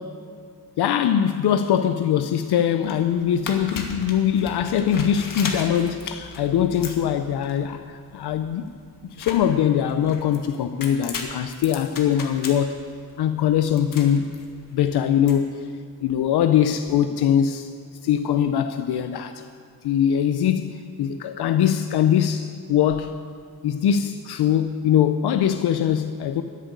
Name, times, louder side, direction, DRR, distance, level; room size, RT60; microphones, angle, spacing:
voice 1, 0.8-8.7 9.0-12.8 13.2-14.3 14.7-15.7 16.0-17.7 18.0-19.4 19.8-23.2 23.6-26.4, left 9 dB, 75° left, 9 dB, 0.6 m, -22 dB
sound 1, 2.8-15.3, left 4 dB, 55° left, 1.6 m, -37 dB
13.5 x 7.7 x 9.4 m, 2.1 s
wide cardioid pair, 170°, 39 cm